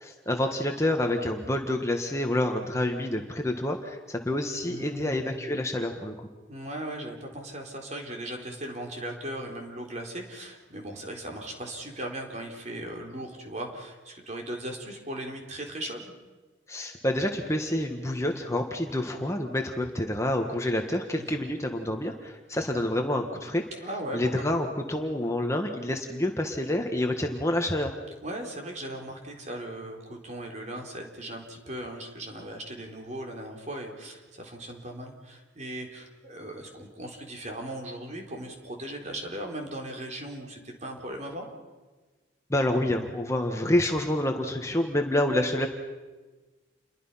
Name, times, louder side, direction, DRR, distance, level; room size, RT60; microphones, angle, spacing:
voice 1, 0.0-6.1 16.7-23.6 24.1-27.9 42.5-45.7, left 1 dB, 15° left, 3 dB, 1.5 m, -28 dB
voice 2, 4.6-5.3 6.5-16.1 21.2-21.5 23.8-24.2 24.5-24.6 28.2-41.5, right 1 dB, 35° right, 1 dB, 4.0 m, -38 dB
29.5 x 22.5 x 5.8 m, 1.3 s
head